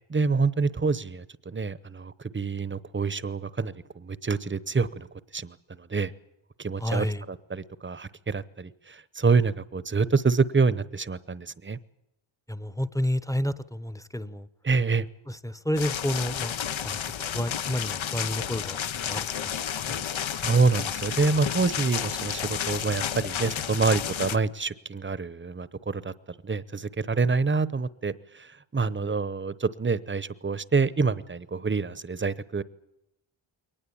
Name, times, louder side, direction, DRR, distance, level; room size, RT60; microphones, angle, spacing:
voice 1, 0.1-5.1 5.3-6.1 6.6-11.8 14.6-15.1 20.4-26.1 26.4-32.6, right 4 dB, 25° right, 18 dB, 0.8 m, -27 dB
voice 2, 6.8-7.2 12.5-14.5 15.3-16.5 16.8-17.0 17.3-19.6 19.8-20.0, left 1 dB, 5° left, 15 dB, 0.8 m, -30 dB
sound 1, 15.8-24.4, left 9 dB, 75° left, 0.9 m, -31 dB
23.0 x 19.0 x 8.6 m, 0.85 s
wide cardioid pair, 165°, 48 cm